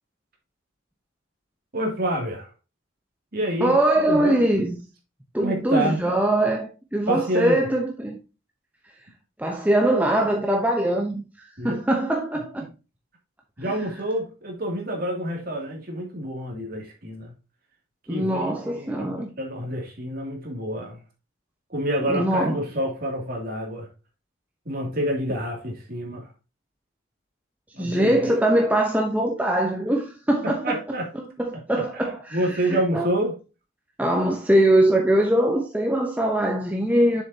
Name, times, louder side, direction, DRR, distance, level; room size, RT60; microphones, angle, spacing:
voice 1, 1.7-2.5 3.3-4.4 5.4-6.0 7.1-7.7 11.6-11.8 13.6-17.3 18.1-21.0 21.7-23.9 24.6-26.3 27.7-28.2 30.4-31.1 31.5-32.0 32.3-33.4, right 1 dB, 45° right, 2.5 m, -28 dB
voice 2, 3.6-4.8 5.3-8.2 9.4-11.2 11.6-12.7 18.1-19.3 22.1-22.6 27.8-30.8 31.2-32.4 32.7-33.1 34.0-37.2, right 1 dB, 10° right, 0.8 m, -22 dB
7.1 x 6.9 x 2.8 m
head